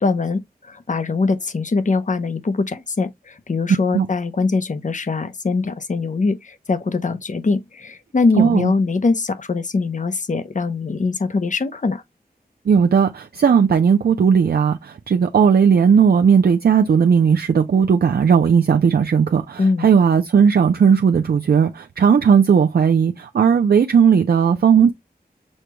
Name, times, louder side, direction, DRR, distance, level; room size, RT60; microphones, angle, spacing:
voice 1, 0.0-12.0 19.6-19.9, left 4 dB, 50° left, 0.7 m, -22 dB
voice 2, 8.4-8.7 12.7-24.9, right 6 dB, 70° right, 0.4 m, -16 dB
6.4 x 2.2 x 2.9 m
wide cardioid pair, 80°, 16 cm